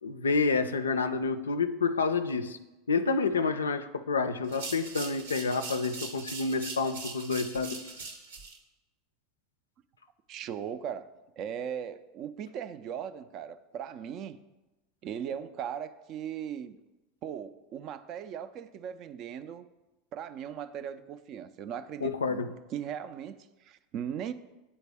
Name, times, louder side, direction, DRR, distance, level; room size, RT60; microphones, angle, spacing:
voice 1, 0.0-2.6 2.9-7.8 22.0-22.5, left 4 dB, 85° left, 11 dB, 0.3 m, -29 dB
sound 1, 4.4-8.6, right 4 dB, 80° right, 0.9 m, -41 dB
voice 2, 10.3-11.1 11.4-14.4 15.0-16.8 17.2-19.7 20.1-22.4 22.7-24.3, right 8 dB, 50° right, 13 dB, 0.4 m, -38 dB
8.7 x 4.1 x 3.4 m, 1.1 s
hypercardioid pair, 85°, 0 cm